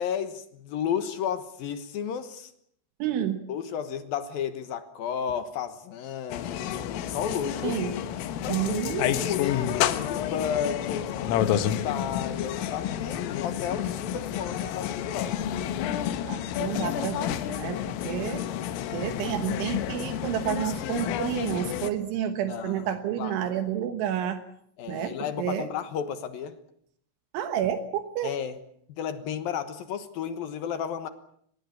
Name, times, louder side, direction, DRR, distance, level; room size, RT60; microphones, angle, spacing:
voice 1, 0.0-2.5 3.5-6.7 7.1-7.8 8.4-15.5 17.8-18.2 22.5-22.9 23.2-23.5 24.8-26.6 28.2-28.6 29.0-31.1, left 8 dB, 70° left, 10 dB, 2.4 m, -33 dB
voice 2, 3.0-3.4 7.6-7.9 8.5-9.2 16.3-17.8 18.1-18.4 18.9-24.4 24.9-25.7 27.3-28.3, right 10 dB, 75° right, 9 dB, 3.5 m, -30 dB
sound 1, 6.3-21.9, left 10 dB, 90° left, 4.0 m, -30 dB
24.5 x 20.0 x 8.5 m, 0.67 s
omnidirectional pair, 5.7 m